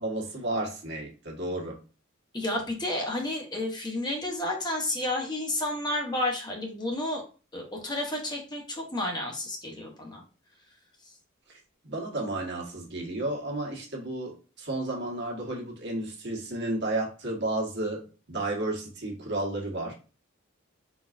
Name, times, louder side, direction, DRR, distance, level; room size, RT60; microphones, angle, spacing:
voice 1, 0.0-1.8 11.5-18.0 18.3-19.9, right 2 dB, 60° right, -1 dB, 1.4 m, -32 dB
voice 2, 2.3-7.2 7.5-10.2, left 1 dB, 20° left, 1 dB, 1.0 m, -31 dB
4.6 x 4.1 x 2.5 m, 0.35 s
head